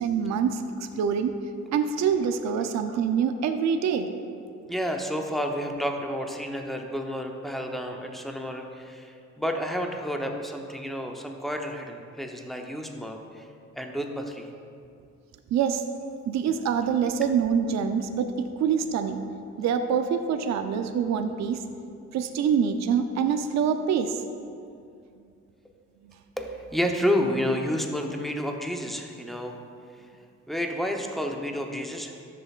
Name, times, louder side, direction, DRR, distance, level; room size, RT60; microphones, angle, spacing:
voice 1, 0.0-1.3 1.7-4.1 15.5-15.8 16.3-19.2 19.6-21.6 22.1-24.2, right 7 dB, 65° right, 7 dB, 0.6 m, -25 dB
voice 2, 4.7-13.5 13.7-14.5 26.4-29.6 30.5-32.2, equal, ahead, 2 dB, 0.8 m, -30 dB
12.5 x 6.8 x 2.4 m, 2.4 s
cardioid pair, 90°, 30 cm